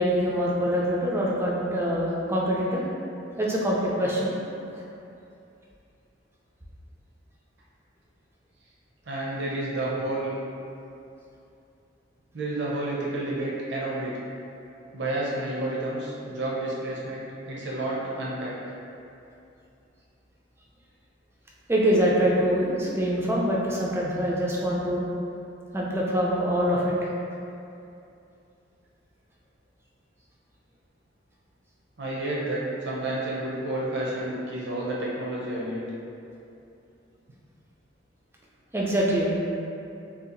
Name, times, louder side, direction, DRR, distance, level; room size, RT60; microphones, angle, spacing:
voice 1, 0.0-2.8 3.4-4.4 21.7-25.0 25.7-27.1 38.7-39.4, equal, 15° right, -5 dB, 0.4 m, -24 dB
voice 2, 9.0-10.3 12.3-14.2 14.9-18.6 32.0-35.8, right 1 dB, 60° right, -5 dB, 0.6 m, -30 dB
2.8 x 2.4 x 3.8 m, 2.7 s
head